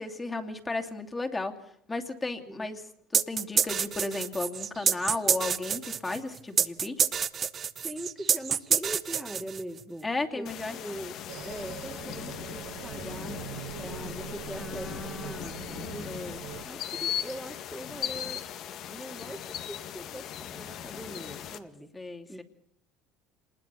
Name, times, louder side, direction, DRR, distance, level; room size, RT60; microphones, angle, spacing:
voice 1, 0.0-1.5 1.9-2.8 3.1-7.0 10.0-10.8 14.5-15.6 16.1-16.4 21.9-22.4, left 2 dB, 20° left, 4 dB, 2.7 m, -34 dB
sound 1, 3.1-9.8, right 7 dB, 40° right, 1.1 m, -27 dB
voice 2, 7.8-13.4 13.8-16.4 16.6-18.5 18.9-22.4, right 1 dB, 5° right, 3 dB, 2.1 m, -42 dB
sound 2, 10.5-21.6, left 10 dB, 55° left, 1.9 m, -38 dB
sound 3, 11.3-16.6, right 10 dB, 70° right, 1.6 m, -42 dB
27.0 x 20.0 x 7.0 m, 0.69 s
hypercardioid pair, 80°, 0 cm